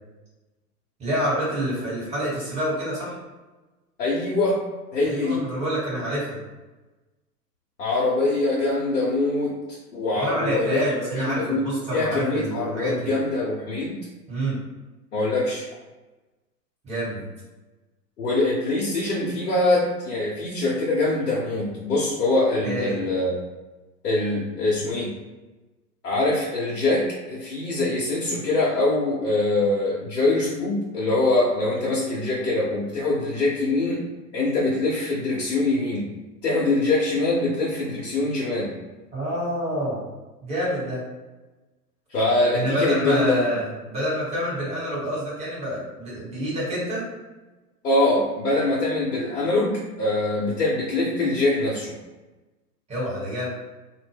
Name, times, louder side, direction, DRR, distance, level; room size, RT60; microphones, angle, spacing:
voice 1, 1.0-3.2 5.0-6.3 10.1-13.1 14.3-14.5 16.8-17.2 22.6-23.0 39.1-40.0 40.4-41.0 42.5-47.0 52.9-53.5, equal, 15° right, -7 dB, 1.1 m, -27 dB
voice 2, 4.0-4.6 4.9-5.4 7.8-9.6 9.9-10.8 11.1-14.0 15.1-15.6 18.2-23.3 24.0-25.1 26.0-34.0 34.3-36.1 36.4-38.7 42.1-43.4 47.8-51.9, left 2 dB, 70° left, -6 dB, 0.8 m, -23 dB
2.1 x 2.1 x 3.3 m, 1.1 s
figure-of-eight pair, 110°, 48 cm